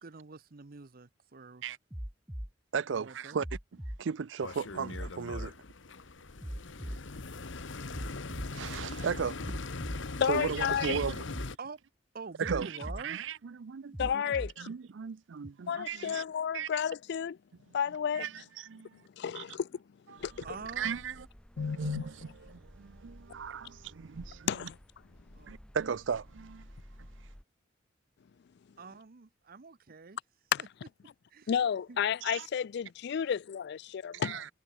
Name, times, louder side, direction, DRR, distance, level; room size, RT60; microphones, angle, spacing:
voice 1, 0.0-1.6 2.9-3.4 11.6-11.8 12.1-13.2 20.4-21.3 25.3-25.6 28.8-30.2 30.6-30.7 31.3-31.5 31.9-32.0, right 4 dB, 50° right, 0.8 m, -46 dB
sound 1, 1.9-2.5 3.4-4.0 4.9-5.5 6.4-7.0 7.9-8.5 9.4-10.0 10.9-11.5 12.4-13.0 13.9-14.5 15.4-15.5, equal, 10° right, 1.4 m, -39 dB
voice 2, 2.7-3.6 4.0-5.6 8.5-9.4 10.3-11.3 12.4-12.8 13.0-14.2 14.6-16.2 16.5-16.7 18.1-18.3 18.6-19.0 19.4-19.5 20.8-21.1 21.6-24.5 25.5-26.7 27.0-27.1 32.3-32.5 34.1-34.5, right 6 dB, 75° right, 0.5 m, -36 dB
sound 2, 4.4-11.6, left 3 dB, 80° left, 1.2 m, -41 dB
voice 3, 10.2-11.0 14.0-14.7 15.7-17.4 17.7-18.3 19.2-19.8 20.1-20.5 21.6-22.1 24.5-24.8 30.5-30.6 31.5-34.4, left 8 dB, 60° left, 0.4 m, -32 dB
sound 3, 20.2-27.4, equal, 5° left, 1.1 m, -54 dB
head